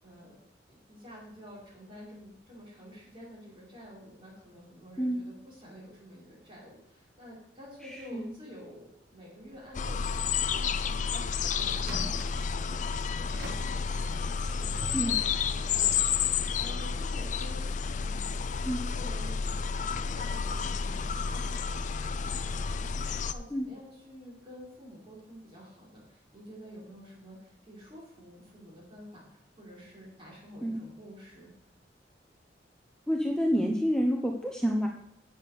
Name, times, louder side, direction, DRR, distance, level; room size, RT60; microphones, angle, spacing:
voice 1, 0.0-0.3 0.6-11.3 11.5-12.9 13.1-17.6 17.9-18.4 18.9-19.5 19.8-31.5, equal, 30° right, -5 dB, 4.8 m, -49 dB
voice 2, 7.8-8.3 14.9-15.2 18.6-18.8 23.5-23.7 30.6-30.8 33.1-34.9, equal, 5° left, 1 dB, 0.8 m, -28 dB
sound 1, 9.4-9.9 10.3-10.4 10.9-11.2 11.7-17.4, equal, 65° right, 1.6 m, -46 dB
sound 2, 9.7-23.3, left 6 dB, 45° left, 0.4 m, -31 dB
8.5 x 7.3 x 6.6 m, 0.74 s
head